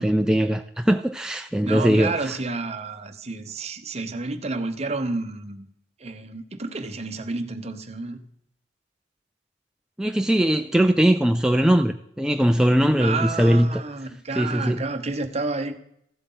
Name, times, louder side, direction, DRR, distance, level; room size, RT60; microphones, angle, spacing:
voice 1, 0.0-2.3 10.0-13.8 14.4-14.8, equal, 5° right, 0.3 m, -20 dB
voice 2, 1.6-5.7 6.0-8.2 13.0-15.8, right 3 dB, 40° right, 0.9 m, -30 dB
14.5 x 8.0 x 3.9 m
head